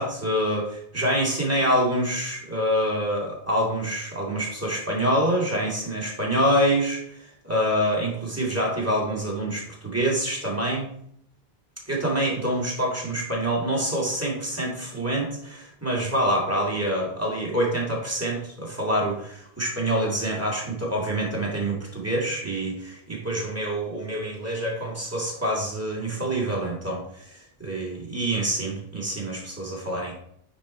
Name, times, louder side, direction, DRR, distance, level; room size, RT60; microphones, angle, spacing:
voice 1, 0.0-10.9 11.9-30.1, right 1 dB, 15° right, -4 dB, 2.4 m, -26 dB
9.6 x 4.2 x 4.3 m, 0.68 s
omnidirectional pair, 1.1 m